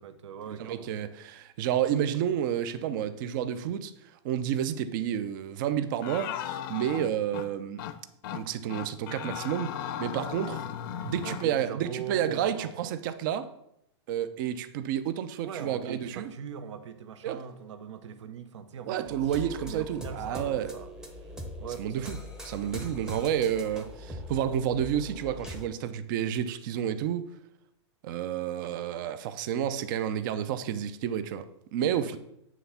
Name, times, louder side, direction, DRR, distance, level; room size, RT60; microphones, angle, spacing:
voice 1, 0.0-0.9 11.2-13.0 15.4-20.9 21.2-22.1 31.8-32.2, right 7 dB, 75° right, 0.9 m, -41 dB
voice 2, 0.6-3.9 4.2-7.8 8.3-10.7 11.0-13.5 14.1-16.3 17.2-17.4 18.8-20.7 21.8-22.2 22.4-27.3 28.0-32.2, right 10 dB, 45° right, 0.6 m, -30 dB
sound 1, 6.0-7.5 7.8-8.0 8.2-8.4 8.7-11.5, left 10 dB, 45° left, 0.6 m, -36 dB
sound 2, 19.0-25.7, equal, 5° right, 0.7 m, -42 dB
9.2 x 3.4 x 5.7 m
supercardioid pair, 155°, 15 cm